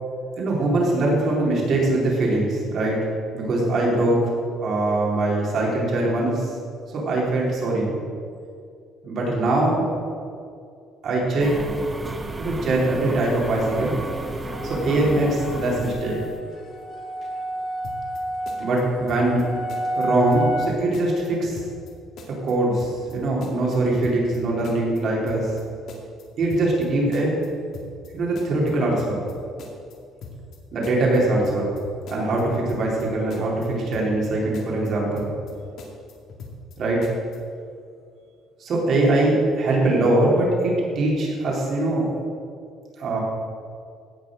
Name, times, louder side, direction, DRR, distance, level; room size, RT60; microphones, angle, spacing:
voice 1, 0.4-3.0 3.3-4.3 4.6-6.5 6.9-8.0 9.0-9.9 11.0-11.5 12.4-14.0 14.6-16.2 18.6-19.5 20.0-21.6 22.4-25.5 26.4-27.4 28.1-29.2 30.7-31.8 32.1-35.3 36.8-37.1 38.6-42.1 43.0-43.2, right 2 dB, 45° right, -3 dB, 3.9 m, -22 dB
sound 1, 11.4-16.4, right 2 dB, 15° right, 0.9 m, -33 dB
sound 2, 13.5-20.7, right 1 dB, 45° left, 2.4 m, -31 dB
sound 3, 17.8-18.2 18.5-19.4 19.7-20.1 20.3-20.7 20.9-21.9 22.2-22.5 22.8-23.1 23.4-24.4 24.6-25.0 25.3-25.6 25.9-26.9 27.1-27.5 27.7-28.1 28.4-29.3 29.6-30.0 30.2-30.6 30.8-31.8 32.1-32.4 32.7-33.0 33.3-34.3 34.5-34.9 35.2-35.5 35.8-36.8 37.0-37.4, left 3 dB, 60° left, 2.3 m, -40 dB
16.5 x 6.6 x 6.6 m, 2.3 s
cardioid pair, 140°, 0 cm